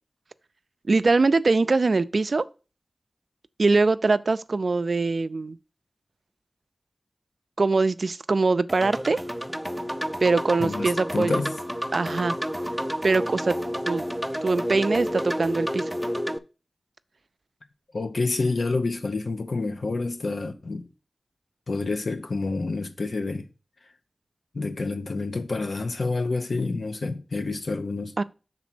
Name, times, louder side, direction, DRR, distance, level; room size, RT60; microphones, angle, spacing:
voice 1, 0.9-2.4 3.6-5.6 7.6-9.2 10.2-11.4 11.9-12.4 13.0-13.5 13.9-14.0 14.4-15.9 28.2-28.3, right 3 dB, 75° right, 0.3 m, -22 dB
sound 1, 8.7-16.4, equal, 10° right, 0.5 m, -30 dB
voice 2, 10.6-11.5 17.9-20.9 21.7-23.4 24.5-28.1, left 3 dB, 85° left, 0.8 m, -28 dB
6.0 x 4.0 x 6.0 m
wide cardioid pair, 45°, 0 cm